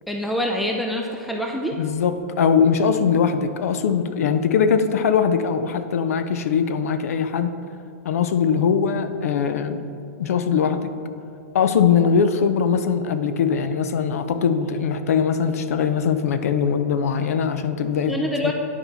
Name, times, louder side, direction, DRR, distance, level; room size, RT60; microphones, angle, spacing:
voice 1, 0.1-1.8 18.1-18.5, equal, ahead, 1 dB, 0.3 m, -25 dB
voice 2, 1.8-7.5 8.0-9.8 10.2-10.9 11.5-18.2 18.4-18.5, left 6 dB, 75° left, 10 dB, 0.6 m, -21 dB
10.0 x 4.5 x 4.0 m, 2.6 s
hypercardioid pair, 150°, 8 cm